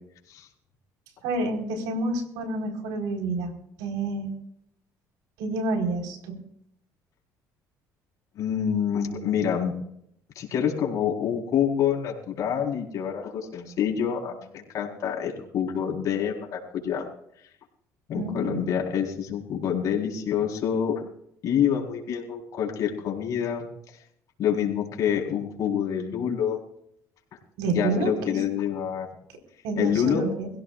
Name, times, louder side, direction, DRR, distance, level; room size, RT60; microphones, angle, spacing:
voice 1, 1.2-3.5 3.8-4.3 5.4-6.4 18.1-18.6 27.6-28.4 29.6-30.5, right 3 dB, 90° right, 3 dB, 4.6 m, -29 dB
voice 2, 8.3-9.7 10.3-17.1 18.1-20.9 21.4-23.7 24.4-26.6 27.6-29.1 29.8-30.2, left 8 dB, 55° left, -1 dB, 4.4 m, -27 dB
23.0 x 16.0 x 2.5 m, 0.72 s
cardioid pair, 115°, 7 cm